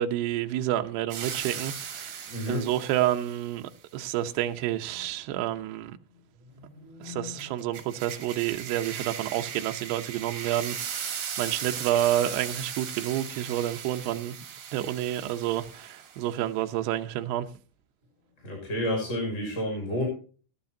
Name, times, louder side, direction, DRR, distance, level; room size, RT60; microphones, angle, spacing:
voice 1, 0.0-6.0 7.0-14.4 14.7-17.5, right 12 dB, 80° right, 2.4 m, -29 dB
sound 1, 1.1-3.4 7.4-16.3, right 8 dB, 55° right, 4.2 m, -38 dB
voice 2, 2.3-2.6 6.6-7.3 18.4-20.1, left 1 dB, 15° left, 6.3 m, -31 dB
19.0 x 12.5 x 2.7 m
omnidirectional pair, 5.9 m